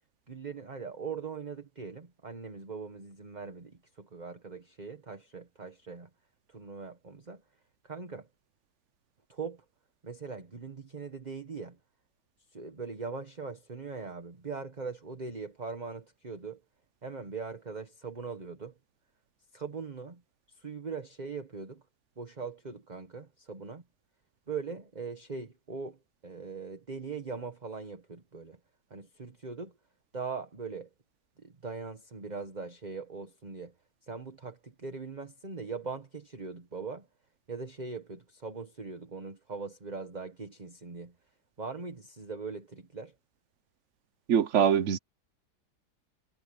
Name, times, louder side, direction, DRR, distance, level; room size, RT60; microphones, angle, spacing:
voice 1, 0.3-6.1 6.5-7.4 7.8-8.3 9.3-9.6 10.0-11.8 12.5-16.6 17.0-18.8 19.5-20.2 20.5-21.8 22.2-23.8 24.5-28.6 28.9-29.8 30.1-30.9 31.4-33.8 34.0-37.1 37.5-41.1 41.6-43.1, right 5 dB, 25° right, 1.5 m, -41 dB
voice 2, 44.3-45.0, right 8 dB, 55° right, 1.1 m, -23 dB
omnidirectional pair, 1.7 m